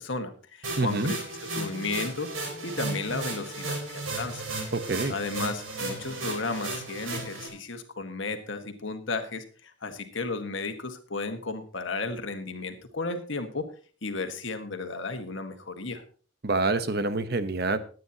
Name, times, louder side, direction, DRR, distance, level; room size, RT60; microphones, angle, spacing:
voice 1, 0.0-2.3 2.6-4.4 5.1-13.7 14.0-16.0, left 3 dB, 70° left, 7 dB, 1.7 m, -34 dB
sound 1, 0.6-7.5, right 2 dB, 90° right, 3.9 m, -35 dB
voice 2, 0.8-1.1 4.7-5.1 16.4-17.8, right 3 dB, 50° right, 11 dB, 1.0 m, -26 dB
20.5 x 9.4 x 2.9 m, 0.39 s
head